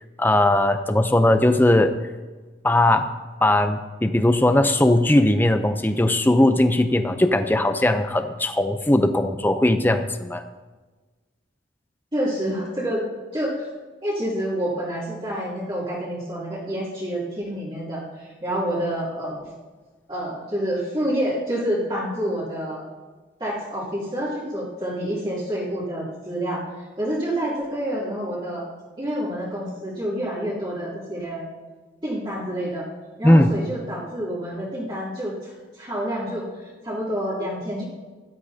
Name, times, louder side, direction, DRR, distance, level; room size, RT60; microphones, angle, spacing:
voice 1, 0.2-1.9 2.6-3.1 3.4-10.4 33.2-33.5, left 1 dB, 10° left, 8 dB, 0.5 m, -19 dB
voice 2, 12.1-13.0 13.3-13.7 14.0-19.4 20.1-22.8 23.4-26.6 27.0-28.6 29.0-31.5 32.0-32.9 33.2-37.8, equal, 25° right, -9 dB, 2.9 m, -28 dB
16.0 x 12.0 x 2.8 m, 1.3 s
head